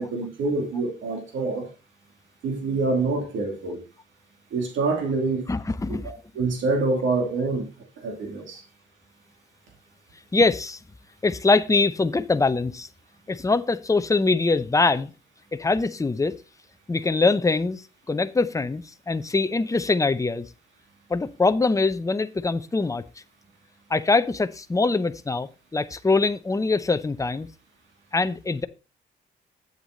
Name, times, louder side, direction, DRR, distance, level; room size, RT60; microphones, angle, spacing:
voice 1, 0.0-1.7 2.4-3.8 4.5-5.4 6.3-7.7 8.0-8.6, right 3 dB, 80° right, 2.7 m, -26 dB
voice 2, 5.5-6.1 10.3-10.8 11.2-12.9 13.3-15.1 15.5-16.4 16.9-20.5 21.1-23.0 23.9-27.5 28.1-28.7, left 3 dB, 15° left, 0.7 m, -23 dB
8.2 x 8.0 x 4.0 m
cardioid pair, 85°, 20 cm